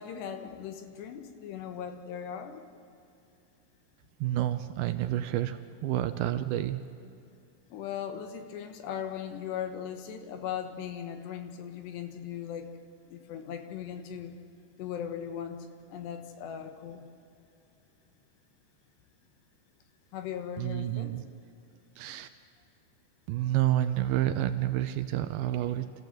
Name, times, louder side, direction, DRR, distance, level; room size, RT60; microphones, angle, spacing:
voice 1, 0.0-2.6 7.7-12.7 13.1-14.3 14.8-17.1 20.1-21.1, left 8 dB, 80° left, 6 dB, 3.5 m, -38 dB
voice 2, 4.2-6.8 20.6-21.3 22.0-22.3 23.3-25.9, right 13 dB, 80° right, 10 dB, 2.4 m, -29 dB
27.5 x 14.5 x 7.9 m, 2.6 s
omnidirectional pair, 4.8 m